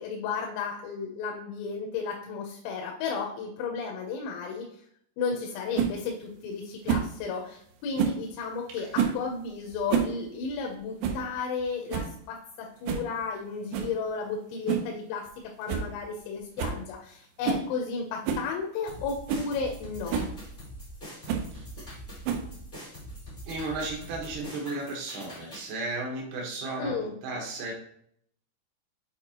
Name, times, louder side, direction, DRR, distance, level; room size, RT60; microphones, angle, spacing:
voice 1, 0.0-4.7 5.2-15.3 15.6-20.3 26.8-27.2, left 5 dB, 85° left, 0 dB, 3.5 m, -33 dB
sound 1, 5.7-5.9 6.9-7.1 8.0-8.2 8.9-9.2 9.7-10.2 10.4-10.5 11.0-11.2 11.6-11.7 11.9-12.2 12.9-13.1 13.7-13.9 14.7-14.9 15.3-15.4 15.7-15.9 16.2-16.3 16.6-16.8 17.4-17.7 18.2-18.5 19.0-19.1 19.3-19.5 20.1-20.3 21.3-21.5 22.2-22.6, right 7 dB, 90° right, 2.5 m, -28 dB
sound 2, 18.9-25.7, equal, 55° left, 0.5 m, -43 dB
voice 2, 23.4-27.7, right 2 dB, 65° right, -1 dB, 2.8 m, -35 dB
8.4 x 4.4 x 2.9 m, 0.67 s
omnidirectional pair, 5.9 m